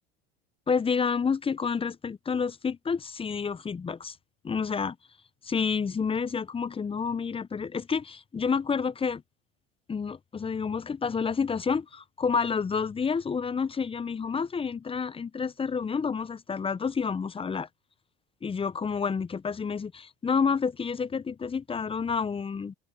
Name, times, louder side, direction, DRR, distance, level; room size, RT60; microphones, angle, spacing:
voice 1, 0.7-4.2 4.4-5.0 5.4-9.2 9.9-17.7 18.4-22.7, left 5 dB, 20° left, 0.7 m, -29 dB
hypercardioid pair, 80°, 31 cm